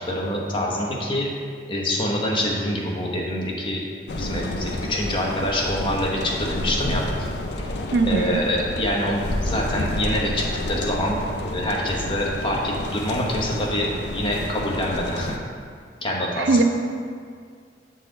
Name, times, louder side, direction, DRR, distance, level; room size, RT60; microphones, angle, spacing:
voice 1, 0.1-1.3 1.7-3.8 4.1-7.0 8.1-15.3 16.0-16.6, left 1 dB, 25° left, -3 dB, 0.9 m, -25 dB
sound 1, 4.1-15.4, left 1 dB, 65° left, 0.5 m, -30 dB
voice 2, 7.9-8.4 16.4-16.6, right 3 dB, 75° right, 6 dB, 0.4 m, -20 dB
7.4 x 4.1 x 3.8 m, 2.1 s
head